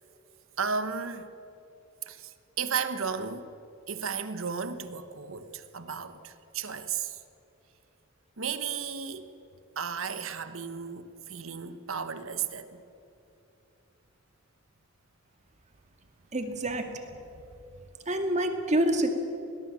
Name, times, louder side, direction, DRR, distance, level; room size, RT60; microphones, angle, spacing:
voice 1, 0.6-1.3 2.1-3.5 3.9-7.2 8.4-9.3 9.8-12.8, right 6 dB, 80° right, 1.3 m, -34 dB
voice 2, 16.3-16.9 18.1-19.1, right 1 dB, 35° right, 2.2 m, -27 dB
22.0 x 19.0 x 7.5 m
head